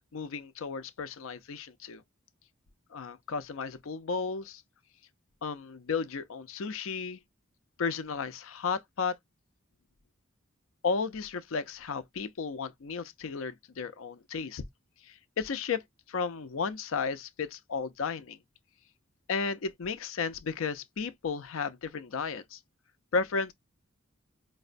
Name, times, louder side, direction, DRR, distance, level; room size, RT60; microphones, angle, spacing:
voice 1, 0.1-2.0 2.9-4.6 5.4-7.2 7.8-9.2 10.8-14.6 15.1-15.8 16.1-18.4 19.3-22.6 23.1-23.5, left 5 dB, 85° left, 0.5 m, -33 dB
4.6 x 2.1 x 2.5 m
head